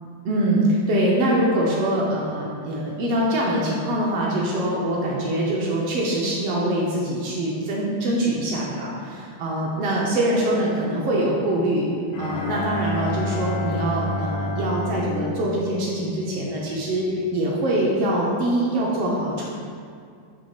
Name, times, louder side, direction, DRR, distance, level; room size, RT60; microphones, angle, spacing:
voice 1, 0.2-11.9 12.2-19.4, right 1 dB, 80° right, -4 dB, 1.3 m, -23 dB
Bowed string instrument, 12.1-16.5, left 2 dB, 80° left, 1.6 m, -29 dB
6.6 x 3.1 x 5.7 m, 2.3 s
omnidirectional pair, 3.6 m